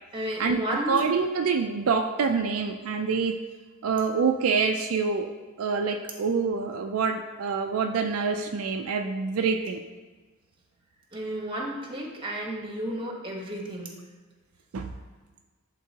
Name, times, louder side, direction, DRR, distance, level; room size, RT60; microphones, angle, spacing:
voice 1, 0.1-1.0 11.1-13.9, right 1 dB, 25° right, -1 dB, 1.1 m, -32 dB
voice 2, 0.9-3.4 3.8-5.3 5.6-9.8 14.7-14.9, right 5 dB, 70° right, 4 dB, 0.4 m, -26 dB
11.0 x 3.7 x 2.8 m, 1.3 s
head